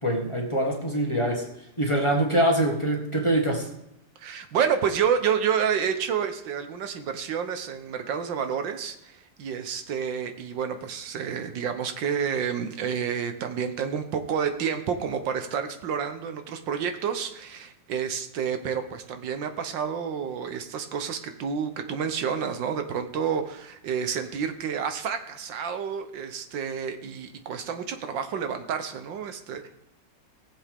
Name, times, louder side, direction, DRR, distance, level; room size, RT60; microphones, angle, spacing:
voice 1, 0.0-1.5 1.8-3.7, right 1 dB, 20° left, 0 dB, 1.4 m, -24 dB
voice 2, 4.2-29.7, right 7 dB, 85° right, 8 dB, 1.7 m, -29 dB
19.5 x 7.4 x 3.5 m, 0.86 s
omnidirectional pair, 2.0 m